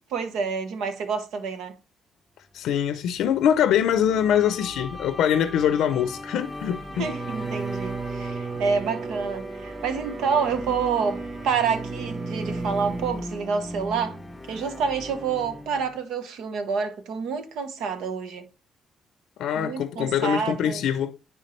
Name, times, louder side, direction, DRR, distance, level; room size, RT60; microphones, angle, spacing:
voice 1, 0.1-1.7 7.0-14.2 14.5-18.4 19.5-20.8, right 5 dB, 90° right, 1.1 m, -28 dB
voice 2, 2.5-7.1 19.4-21.1, left 9 dB, 85° left, 0.5 m, -23 dB
sound 1, 3.0-16.0, left 1 dB, 15° left, 0.6 m, -39 dB
Bowed string instrument, 4.1-8.7, left 2 dB, 15° right, 2.6 m, -42 dB
Bowed string instrument 2, 6.9-13.2, right 4 dB, 55° right, 0.7 m, -35 dB
9.9 x 3.6 x 3.1 m
cardioid pair, 90°, 0 cm